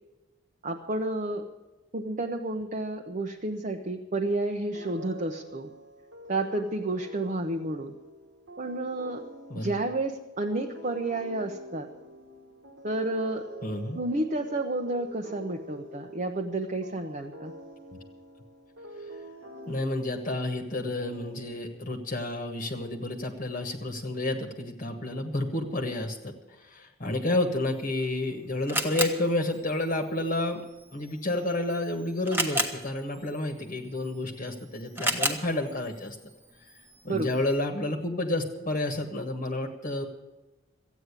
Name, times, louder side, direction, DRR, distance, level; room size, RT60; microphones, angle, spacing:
voice 1, 0.6-1.4 1.9-5.7 6.3-7.9 8.6-9.2 9.5-11.9 12.8-13.4 13.9-17.5 37.1-37.4, right 2 dB, 40° right, 2 dB, 0.9 m, -31 dB
sound 1, 4.7-21.9, right 1 dB, 70° right, 1.7 m, -46 dB
voice 2, 13.6-14.0 19.7-26.3 26.7-30.7 30.9-36.2 37.0-40.1, left 2 dB, 40° left, 4 dB, 1.3 m, -30 dB
Camera, 27.7-37.6, right 1 dB, 10° right, 1.2 m, -35 dB
14.5 x 9.1 x 8.2 m, 1.1 s
head